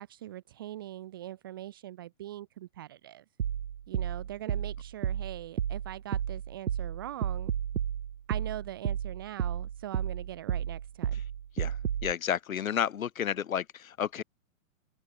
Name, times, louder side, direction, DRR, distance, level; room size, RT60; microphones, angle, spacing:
voice 1, 0.0-3.2 3.9-7.5 8.3-11.2, right 13 dB, 15° right, 0.7 m, -42 dB
sound 1, 3.4-12.1, right 9 dB, 70° right, 2.3 m, -32 dB
voice 2, 11.5-14.2, left 9 dB, 65° left, 3.0 m, -31 dB
open air
hypercardioid pair, 175°, 43 cm